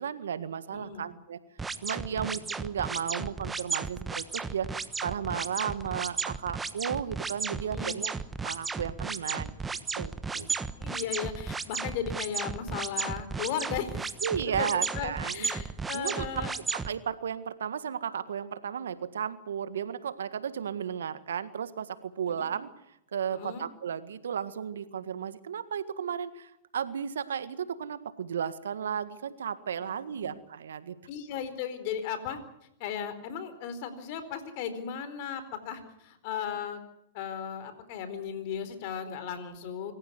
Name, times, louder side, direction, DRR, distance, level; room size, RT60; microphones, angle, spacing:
voice 1, 0.0-1.4 1.8-4.7 5.0-8.1 8.4-9.6 10.0-10.5 14.2-15.5 15.9-16.3 16.7-22.7 23.1-30.9, right 8 dB, 80° right, 13 dB, 1.7 m, -34 dB
voice 2, 0.7-1.2 2.1-2.3 7.6-8.0 10.8-14.2 14.5-16.6 22.4-22.5 23.3-23.7 30.1-30.3 31.1-32.4 32.8-36.8 37.1-39.9, left 8 dB, 55° left, 11 dB, 4.4 m, -36 dB
sound 1, 1.6-16.9, right 4 dB, 15° right, 1.3 m, -34 dB
26.0 x 14.5 x 9.6 m, 0.79 s
hypercardioid pair, 115°, 0 cm